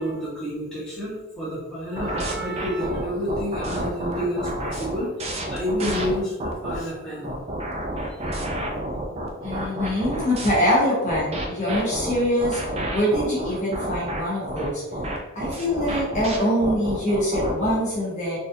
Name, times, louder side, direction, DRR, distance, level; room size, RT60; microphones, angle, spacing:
voice 1, 0.0-7.3 8.0-8.5, equal, 5° left, -10 dB, 1.0 m, -29 dB
sound 1, 2.0-6.8 7.2-10.5 11.1-17.8, right 1 dB, 30° right, 0.3 m, -30 dB
voice 2, 9.4-12.6 12.9-14.8 15.3-18.4, equal, 35° left, -7 dB, 1.0 m, -24 dB
4.0 x 2.5 x 2.7 m, 1.1 s
head